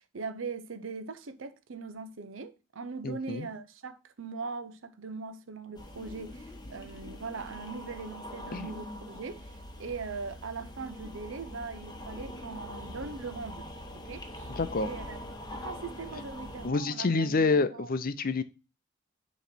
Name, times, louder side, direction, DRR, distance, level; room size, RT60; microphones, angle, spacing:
voice 1, 0.0-13.7 13.9-14.5 14.8-15.2 15.5-17.9, right 4 dB, 80° right, 0.7 m, -40 dB
voice 2, 3.0-3.5 8.5-8.7 14.6-14.9 16.6-18.4, left 3 dB, 50° left, 0.6 m, -28 dB
sound 1, 5.7-16.7, left 1 dB, 20° left, 1.1 m, -43 dB
6.7 x 3.1 x 6.0 m
head